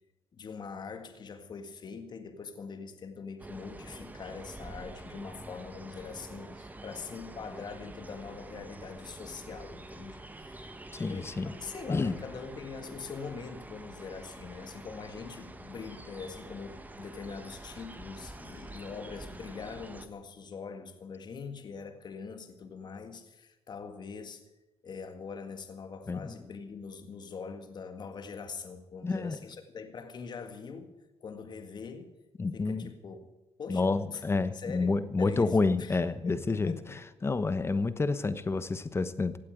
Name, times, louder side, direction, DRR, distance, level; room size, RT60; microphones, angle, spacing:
voice 1, 0.3-10.7 10.9-24.5 24.8-31.0 31.2-32.1 32.5-33.2 33.6-34.2 34.5-37.0, left 5 dB, 45° left, 8 dB, 1.8 m, -43 dB
sound 1, 3.4-20.1, right 2 dB, 15° right, 1.3 m, -47 dB
voice 2, 10.9-11.5 11.9-12.2 26.1-26.3 29.0-29.4 32.4-32.9 33.7-36.7 37.2-39.4, left 3 dB, 25° left, 13 dB, 1.1 m, -29 dB
16.5 x 8.6 x 9.1 m, 1.0 s
cardioid pair, 90°, 10 cm